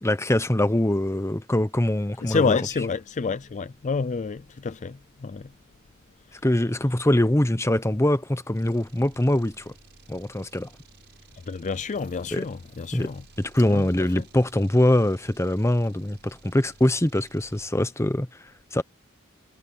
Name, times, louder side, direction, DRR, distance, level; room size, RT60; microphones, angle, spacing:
voice 1, 0.0-2.6 6.4-9.7 10.1-10.7 12.3-12.4 12.9-13.1 13.4-18.3 18.7-18.8, left 1 dB, 15° left, 0.9 m, -23 dB
voice 2, 2.2-5.5 11.5-13.2 13.7-14.2, left 5 dB, 35° left, 0.4 m, -28 dB
sound 1, 8.5-17.7, right 3 dB, 50° right, 6.3 m, -54 dB
head